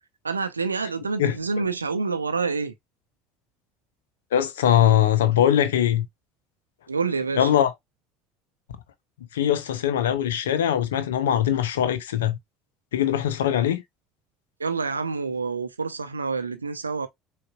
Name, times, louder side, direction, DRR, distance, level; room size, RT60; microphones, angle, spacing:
voice 1, 0.2-2.7 6.9-7.5 14.6-17.1, right 4 dB, 85° right, 0.5 m, -27 dB
voice 2, 4.3-6.1 7.4-7.7 9.3-12.4 12.9-13.8, left 10 dB, 70° left, 0.6 m, -21 dB
6.4 x 2.4 x 2.3 m
figure-of-eight pair, 60°, 0 cm